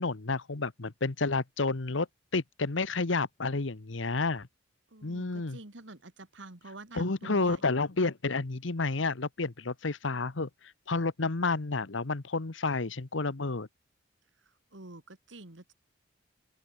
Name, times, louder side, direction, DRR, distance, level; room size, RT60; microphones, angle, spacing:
voice 1, 0.0-2.1 2.3-4.5 5.0-5.6 6.9-10.5 10.9-13.7, left 3 dB, 85° left, 1.1 m, -30 dB
voice 2, 4.9-7.6 14.4-15.7, right 2 dB, 75° right, 2.4 m, -48 dB
open air
head